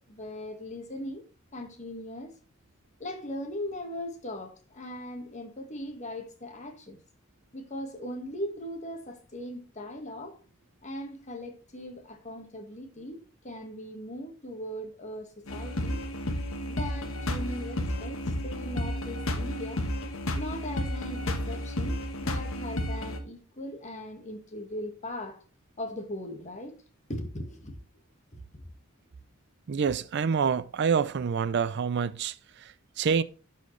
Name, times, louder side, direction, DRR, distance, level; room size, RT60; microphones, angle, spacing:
voice 1, 0.1-1.3 1.5-2.3 3.0-7.0 7.5-10.4 10.8-16.0 16.6-19.8 20.3-25.4 25.8-26.8 27.1-27.7 28.5-28.6, left 1 dB, 35° left, 1.6 m, -39 dB
sound 1, 15.5-23.2, left 1 dB, 80° left, 1.2 m, -32 dB
voice 2, 29.7-33.2, right 6 dB, 55° right, 0.4 m, -27 dB
11.5 x 4.5 x 3.1 m
head